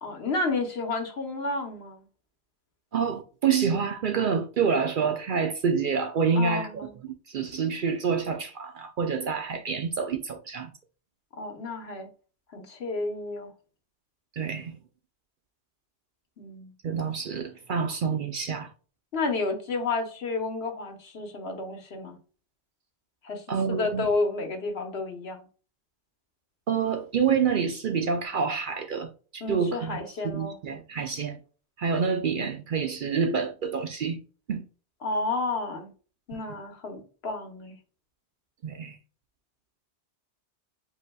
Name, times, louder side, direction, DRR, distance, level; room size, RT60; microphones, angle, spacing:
voice 1, 0.0-2.1 6.3-7.0 11.4-12.1 12.5-13.5 16.4-16.7 19.1-22.2 23.2-25.4 29.4-30.5 35.0-35.9 36.3-37.8, left 3 dB, 65° left, 1.2 m, -31 dB
voice 2, 2.9-10.7 14.3-14.8 16.8-18.7 23.5-24.1 26.7-30.0 30.3-31.4 31.8-34.2 34.5-34.6 36.3-36.4 38.6-39.0, right 6 dB, 60° right, 0.6 m, -27 dB
7.7 x 2.7 x 2.2 m
omnidirectional pair, 1.1 m